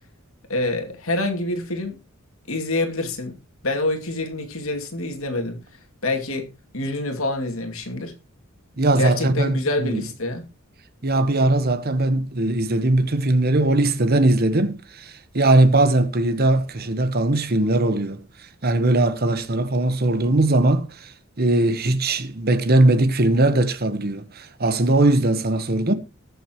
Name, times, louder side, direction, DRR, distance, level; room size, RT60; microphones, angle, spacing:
voice 1, 0.5-2.0 2.5-3.4 3.6-5.6 6.0-6.5 6.7-8.1 8.9-10.4, left 2 dB, 75° left, 2.5 m, -26 dB
voice 2, 8.8-10.0 11.0-18.2 18.6-21.1 21.4-25.9, right 2 dB, 45° right, 1.2 m, -20 dB
20.5 x 7.0 x 3.0 m
head